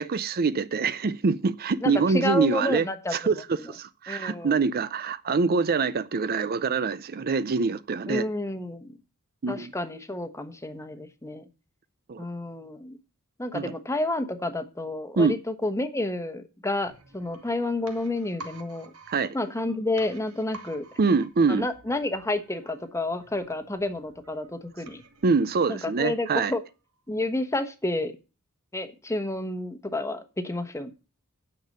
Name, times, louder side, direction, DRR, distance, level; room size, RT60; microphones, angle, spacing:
voice 1, 0.0-2.9 3.1-8.2 9.4-9.7 12.1-12.3 13.5-13.7 15.2-15.4 19.1-19.4 21.0-21.7 25.2-26.5, right 4 dB, 45° right, 0.5 m, -25 dB
voice 2, 1.8-3.7 4.1-4.6 8.1-9.0 9.5-11.5 12.2-13.0 13.4-18.9 19.3-20.8 21.5-25.0 25.7-26.6 27.1-28.1 28.7-30.9, left 2 dB, 15° left, 1.1 m, -30 dB
sound 1, 16.9-26.6 26.9-27.0, right 3 dB, 75° right, 1.9 m, -50 dB
9.6 x 6.7 x 6.5 m
head